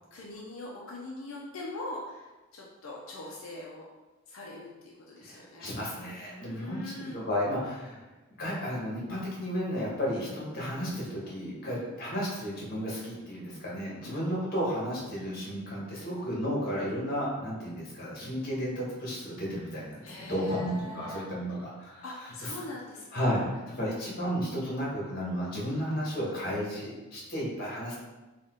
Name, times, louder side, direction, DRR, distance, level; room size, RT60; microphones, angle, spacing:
voice 1, 0.1-3.8 4.3-5.7 6.3-7.3 11.7-11.9 14.0-14.2 20.0-21.3 22.0-23.5, left 2 dB, 90° left, -3 dB, 0.6 m, -42 dB
voice 2, 5.2-8.0 8.4-22.5 23.1-23.4 23.7-27.9, equal, 50° left, -5 dB, 1.4 m, -33 dB
4.1 x 2.6 x 3.7 m, 1.1 s
head